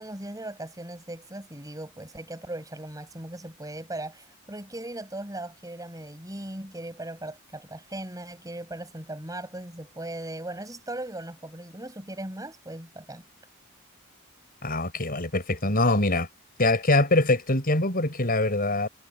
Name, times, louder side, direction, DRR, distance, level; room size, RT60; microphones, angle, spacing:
voice 1, 0.0-13.2, right 1 dB, 15° right, 7.3 m, -38 dB
voice 2, 14.6-16.3 16.6-18.9, left 2 dB, 40° left, 7.1 m, -23 dB
head